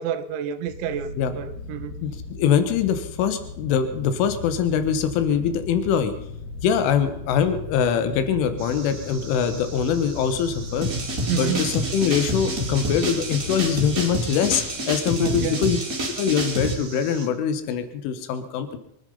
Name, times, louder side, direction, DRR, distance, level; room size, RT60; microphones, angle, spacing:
voice 1, 0.0-1.1 1.4-2.0 11.3-11.7 15.2-15.6, right 9 dB, 80° right, 3.0 m, -29 dB
sound 1, 0.7-14.6, left 3 dB, 50° left, 3.2 m, -37 dB
voice 2, 2.0-6.1 6.6-10.9 11.3-15.8 16.2-18.8, left 7 dB, 80° left, 3.8 m, -23 dB
sound 2, 8.6-17.3, right 4 dB, 45° right, 1.6 m, -43 dB
sound 3, 10.8-16.7, right 1 dB, 30° right, 1.8 m, -28 dB
24.0 x 9.9 x 5.5 m
omnidirectional pair, 5.6 m